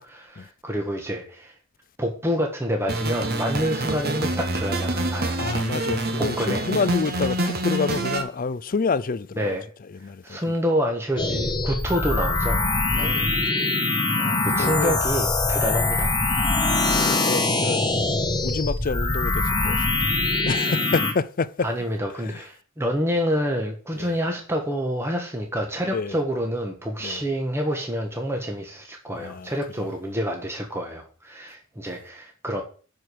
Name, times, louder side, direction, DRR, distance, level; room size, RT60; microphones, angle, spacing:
voice 1, 0.0-1.5 2.0-5.4 6.2-6.6 9.4-9.7 10.2-12.6 13.0-13.2 14.4-16.1 21.6-32.6, equal, 10° right, 1.3 m, -27 dB
sound 1, 2.9-8.2, right 1 dB, 50° right, 1.3 m, -26 dB
voice 2, 5.4-9.6 9.9-10.5 12.9-13.4 14.2-15.0 15.6-15.8 16.9-17.8 18.4-20.0 20.4-21.7 22.2-22.4 24.0-24.2 25.9-26.2 27.0-27.2 29.2-29.5 29.8-29.9, left 4 dB, 45° left, 0.5 m, -28 dB
sound 2, 11.2-21.1, left 2 dB, 20° left, 1.4 m, -23 dB
10.5 x 5.0 x 6.3 m
head